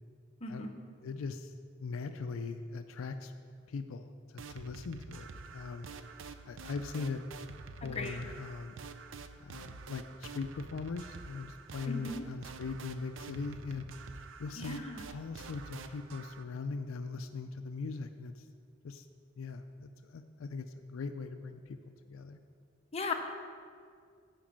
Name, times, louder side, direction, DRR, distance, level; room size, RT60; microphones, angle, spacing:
voice 1, 0.4-0.8 7.8-8.2 11.8-12.2 14.6-15.0 22.9-23.1, left 3 dB, 30° left, 2 dB, 0.8 m, -37 dB
voice 2, 1.0-1.5 1.8-3.3 3.7-5.9 6.5-7.2 7.5-8.7 9.4-13.8 14.4-18.4 18.8-19.0 19.4-21.8 22.1-22.4, left 4 dB, 75° left, 8 dB, 0.4 m, -40 dB
sound 1, 4.4-16.4, right 4 dB, 65° right, 0.5 m, -48 dB
8.9 x 5.2 x 7.4 m, 2.2 s
head